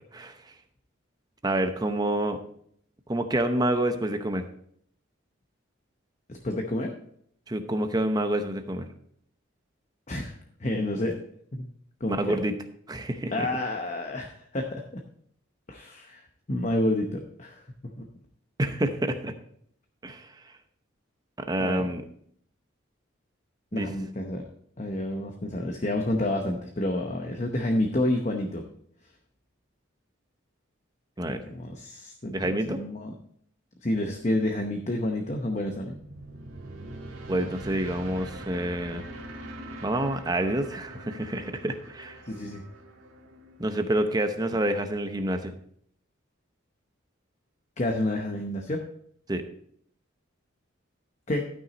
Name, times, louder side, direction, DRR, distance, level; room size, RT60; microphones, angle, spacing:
voice 1, 1.4-2.4 3.1-4.4 7.5-8.9 12.1-12.6 12.9-13.5 18.6-19.3 20.0-20.3 21.4-22.0 23.7-23.9 31.2-31.4 32.3-32.8 37.3-39.0 39.8-42.2 43.6-45.5 49.3-49.4, right 1 dB, 20° right, 7 dB, 0.7 m, -28 dB
voice 2, 6.3-6.9 10.1-11.2 11.5-11.6 12.0-12.4 13.3-15.0 15.7-17.6 18.0-18.1 21.6-21.9 23.7-24.4 24.8-28.6 31.3-33.1 33.8-36.0 42.3-42.6 47.8-48.8 51.3-51.5, left 1 dB, 35° left, 3 dB, 0.8 m, -29 dB
sound 1, 35.5-44.5, right 1 dB, 80° right, 1.8 m, -43 dB
12.5 x 6.1 x 4.1 m, 0.66 s
head